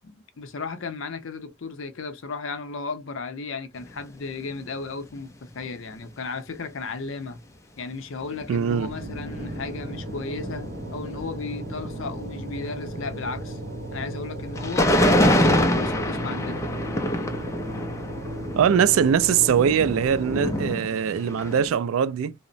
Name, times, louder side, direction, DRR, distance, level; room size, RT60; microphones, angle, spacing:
voice 1, 0.0-7.4 7.8-13.6 13.9-14.9 15.2-16.6, left 4 dB, 65° left, 0.5 m, -35 dB
sound 1, 3.8-4.0 4.6-4.7 5.2-5.3 5.6-5.7 8.2-21.7, left 1 dB, 15° left, 0.3 m, -27 dB
voice 2, 8.5-8.9 18.6-22.3, right 7 dB, 75° right, 0.3 m, -21 dB
sound 2, 8.6-20.7, right 1 dB, 50° right, 0.7 m, -35 dB
2.8 x 2.0 x 2.5 m
head